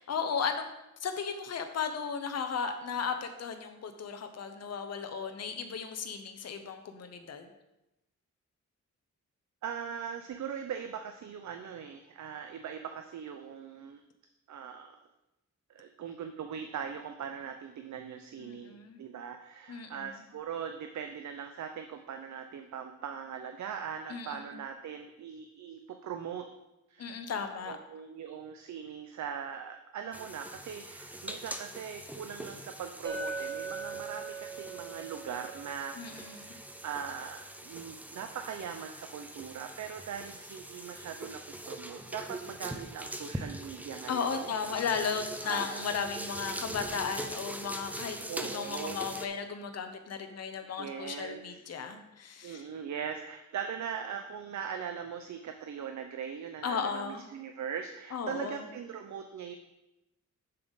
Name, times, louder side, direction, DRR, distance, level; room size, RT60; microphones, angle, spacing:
voice 1, 0.1-0.6 1.0-7.5 18.4-19.0 19.7-20.1 24.1-24.6 27.0-27.8 36.0-36.6 44.1-48.2 48.4-52.7 56.6-57.3 58.1-58.7, left 6 dB, 55° left, 7 dB, 0.7 m, -35 dB
voice 2, 9.6-14.0 14.5-15.0 15.7-26.5 26.9-27.3 27.7-44.5 45.4-45.8 48.3-49.0 50.8-51.6 52.4-59.6, right 7 dB, 70° right, 6 dB, 0.6 m, -40 dB
sound 1, 30.1-49.3, right 1 dB, 5° right, 0.5 m, -42 dB
Chink clink, 33.0-37.3, right 4 dB, 35° right, 1.4 m, -41 dB
7.1 x 6.8 x 3.9 m, 0.94 s
wide cardioid pair, 175°, 30 cm